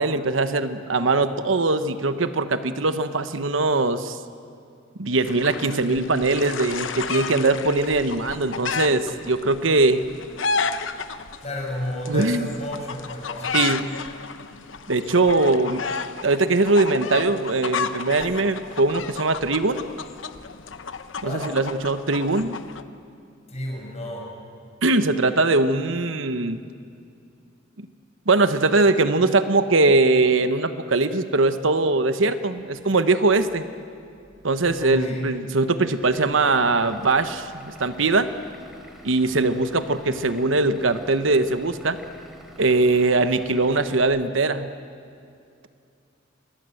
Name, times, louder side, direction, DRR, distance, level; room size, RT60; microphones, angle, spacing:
voice 1, 0.0-4.2 5.0-10.0 12.1-12.5 13.5-13.8 14.9-15.8 16.2-19.9 21.2-22.6 24.8-26.6 27.8-27.9 28.3-33.6 34.4-38.3 39.0-42.0 42.6-44.7, right 3 dB, 85° right, 10 dB, 1.1 m, -21 dB
sound 1, 5.2-22.8, left 5 dB, 75° left, 0.9 m, -32 dB
voice 2, 11.4-13.7 21.2-21.6 23.5-24.4 34.8-35.3, left 1 dB, 35° left, 0 dB, 6.2 m, -31 dB
Vehicle / Engine, 36.0-44.0, equal, ahead, 3.2 m, -47 dB
26.5 x 20.5 x 7.8 m, 2.5 s
head